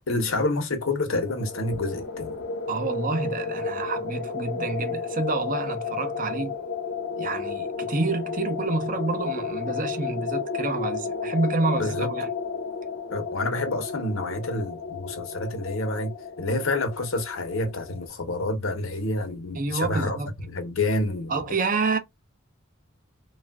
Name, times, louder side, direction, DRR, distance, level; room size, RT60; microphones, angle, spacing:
voice 1, 0.0-2.3 11.8-12.1 13.1-20.2 20.5-21.3, left 2 dB, 80° left, 0.9 m, -28 dB
sound 1, 1.2-18.1, left 5 dB, 55° left, 0.6 m, -32 dB
voice 2, 2.7-6.5 7.2-12.3 19.5-20.3 21.3-22.0, right 3 dB, 40° right, 0.6 m, -28 dB
3.3 x 2.4 x 2.2 m
head